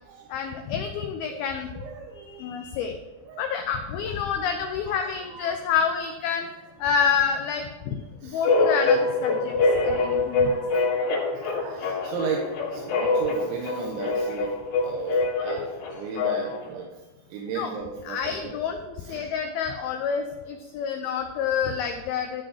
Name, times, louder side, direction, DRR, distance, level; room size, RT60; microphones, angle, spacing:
voice 1, 0.3-1.7 2.3-3.0 3.4-6.5 6.8-10.6 17.5-17.7 18.1-22.4, left 7 dB, 90° left, 6 dB, 2.1 m, -28 dB
voice 2, 1.7-2.4 3.2-3.5 4.0-4.1 4.9-5.6 8.2-8.4 10.3-14.5 14.8-17.0 17.3-18.6 19.0-19.3, right 6 dB, 85° right, 1 dB, 3.3 m, -36 dB
sound 1, 8.4-16.7, left 3 dB, 70° left, 4.2 m, -24 dB
13.0 x 6.4 x 4.8 m, 1.2 s
omnidirectional pair, 5.3 m